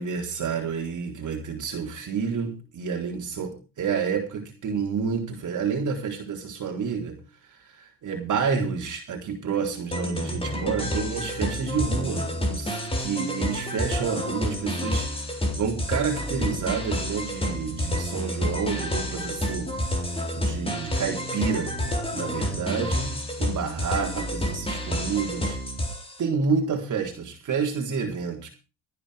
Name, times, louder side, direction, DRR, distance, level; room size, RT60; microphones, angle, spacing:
voice 1, 0.0-7.2 7.7-15.0 15.5-19.7 20.3-23.1 23.4-25.6 26.2-28.5, right 6 dB, 40° right, 1 dB, 3.9 m, -29 dB
sound 1, 9.9-26.2, equal, 15° left, 4.0 m, -29 dB
16.0 x 9.9 x 5.1 m, 0.33 s
cardioid pair, 115°, 44 cm